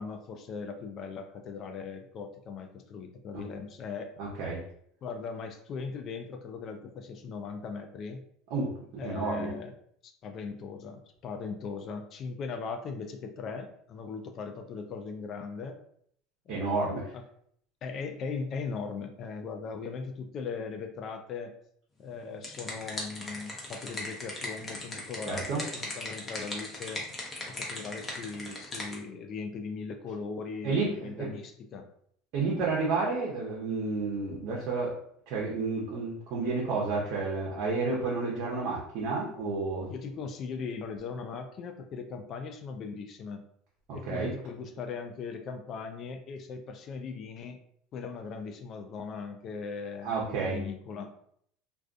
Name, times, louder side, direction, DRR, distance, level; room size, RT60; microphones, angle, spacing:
voice 1, 0.0-4.1 5.0-8.2 9.0-9.7 10.0-15.8 16.5-17.2 17.8-21.5 22.0-27.0 27.5-31.9 39.9-43.4 43.9-47.6 47.9-51.1, left 5 dB, 45° left, 6 dB, 0.3 m, -39 dB
voice 2, 4.2-4.6 8.5-9.5 16.5-17.1 25.3-25.6 30.6-31.3 32.3-34.9 35.3-39.9 44.1-44.3 50.0-50.6, right 3 dB, 65° right, -4 dB, 0.7 m, -31 dB
sound 1, 22.1-29.0, left 2 dB, 20° left, 0.8 m, -38 dB
2.4 x 2.3 x 2.4 m, 0.66 s
supercardioid pair, 110°, 0 cm